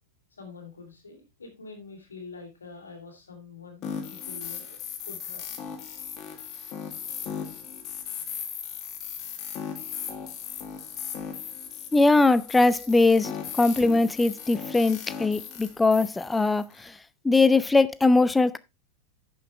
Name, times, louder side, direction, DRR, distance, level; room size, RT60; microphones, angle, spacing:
voice 1, 0.4-5.5 9.8-9.9, left 4 dB, 75° left, 3.1 m, -46 dB
sound 1, 3.8-16.9, left 7 dB, 35° left, 1.8 m, -37 dB
voice 2, 11.9-16.9 17.2-18.6, left 3 dB, 10° left, 0.4 m, -21 dB
10.5 x 7.1 x 3.2 m
figure-of-eight pair, 90°, 0 cm